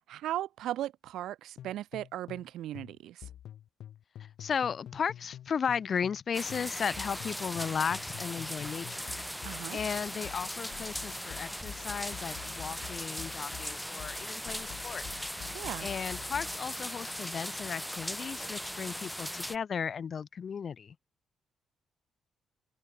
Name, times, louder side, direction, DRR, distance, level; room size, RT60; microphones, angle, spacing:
voice 1, 0.1-3.2 9.4-9.8 15.5-15.9, right 13 dB, 80° right, 1.0 m, -37 dB
sound 1, 1.6-6.2 6.5-16.6, left 11 dB, 70° left, 5.1 m, -47 dB
voice 2, 4.2-9.1 9.7-15.3 15.8-20.9, left 7 dB, 50° left, 4.3 m, -35 dB
sound 2, 6.3-19.6, equal, ahead, 1.7 m, -39 dB
cardioid pair, 90°, 0 cm